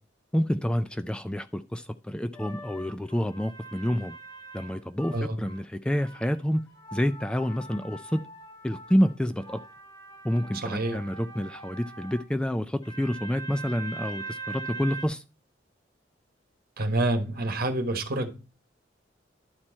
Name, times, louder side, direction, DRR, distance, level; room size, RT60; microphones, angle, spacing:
voice 1, 0.3-4.2 4.5-6.7 6.9-8.2 8.6-9.6 10.2-15.2, equal, 5° left, 0.3 m, -28 dB
sound 1, 2.3-5.6 5.9-12.2 12.8-15.1, right 3 dB, 20° left, 1.6 m, -43 dB
voice 2, 10.6-11.0 16.8-18.3, right 1 dB, 55° right, 1.3 m, -27 dB
11.0 x 4.5 x 4.3 m
head